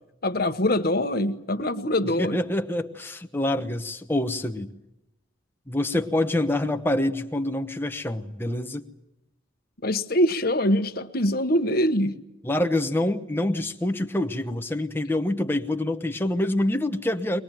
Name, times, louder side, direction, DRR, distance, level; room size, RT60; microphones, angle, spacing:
voice 1, 0.2-2.4 9.8-12.2, left 1 dB, 50° left, 8 dB, 1.2 m, -23 dB
voice 2, 2.2-4.7 5.7-8.8 12.4-17.4, left 1 dB, 10° left, 6 dB, 1.0 m, -26 dB
23.5 x 20.0 x 9.2 m, 0.92 s
head